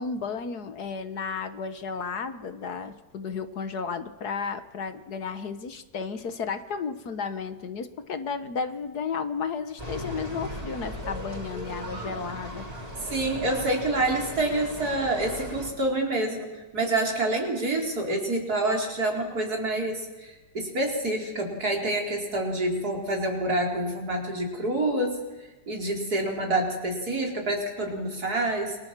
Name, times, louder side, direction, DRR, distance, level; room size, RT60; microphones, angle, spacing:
voice 1, 0.0-12.7, left 5 dB, 65° left, 10 dB, 1.8 m, -33 dB
sound 1, 9.8-15.7, equal, 20° right, 4.6 m, -37 dB
voice 2, 13.1-16.5 16.7-25.2 25.7-28.8, right 2 dB, 60° right, 0 dB, 4.8 m, -27 dB
28.0 x 24.0 x 7.5 m, 1.2 s
omnidirectional pair, 1.8 m